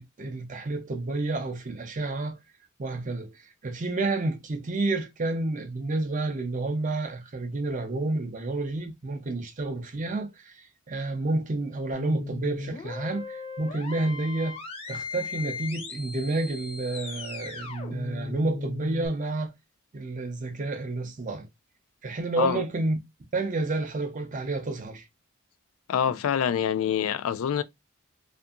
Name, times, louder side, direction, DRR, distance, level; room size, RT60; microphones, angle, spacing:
voice 1, 0.0-2.4 2.8-14.6 14.9-19.5 19.9-21.5 22.0-23.0 23.3-25.0, right 2 dB, 40° right, 0.5 m, -30 dB
sound 1, 11.9-19.1, left 3 dB, 30° left, 0.6 m, -37 dB
voice 2, 25.9-27.6, left 8 dB, 90° left, 0.3 m, -25 dB
2.6 x 2.5 x 2.3 m
head